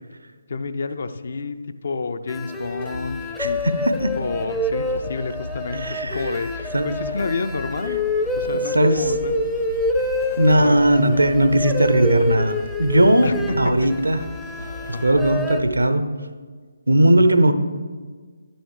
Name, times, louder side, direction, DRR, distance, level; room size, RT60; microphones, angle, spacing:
voice 1, 0.5-1.6 1.8-3.2 3.4-3.8 4.2-8.0 8.4-9.3 9.9-10.0 10.5-10.8 13.2-13.9 14.6-15.3, left 4 dB, 55° left, 11 dB, 0.5 m, -29 dB
sound 1, 2.3-15.6, left 1 dB, 5° left, 0.5 m, -27 dB
sound 2, 2.6-15.7, left 3 dB, 80° left, 1.5 m, -38 dB
voice 2, 3.4-4.1 5.8-6.2 6.7-6.9 8.7-9.0 10.4-14.2 15.0-16.0 16.9-17.5, right 1 dB, 80° right, 9 dB, 0.7 m, -18 dB
11.0 x 10.0 x 3.3 m, 1.5 s
figure-of-eight pair, 145°, 0 cm